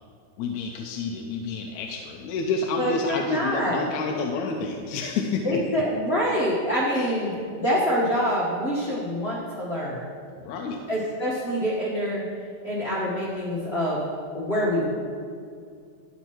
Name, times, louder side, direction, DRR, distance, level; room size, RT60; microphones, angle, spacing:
voice 1, 0.4-5.6 6.9-7.2 10.4-10.8, left 4 dB, 90° left, 1 dB, 2.0 m, -29 dB
voice 2, 2.8-3.8 5.4-10.1 10.9-12.2 12.6-14.0 14.3-14.9, equal, 35° left, -7 dB, 1.1 m, -26 dB
13.5 x 8.8 x 3.1 m, 2.3 s
omnidirectional pair, 3.3 m